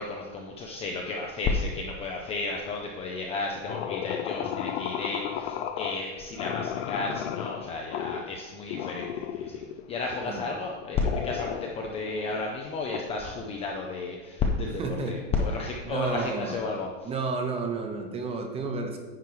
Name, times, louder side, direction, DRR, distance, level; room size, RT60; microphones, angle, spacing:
voice 1, 0.0-14.8 15.1-17.1, left 3 dB, 15° left, 0 dB, 0.4 m, -32 dB
sound 1, 3.7-6.1 6.4-8.3 8.7-9.8 10.1-13.0, left 10 dB, 65° left, 0.6 m, -34 dB
voice 2, 14.8-15.2 15.8-16.6 17.0-19.0, right 4 dB, 15° right, 4 dB, 0.8 m, -31 dB
9.4 x 4.5 x 4.7 m, 1.4 s
supercardioid pair, 150°, 36 cm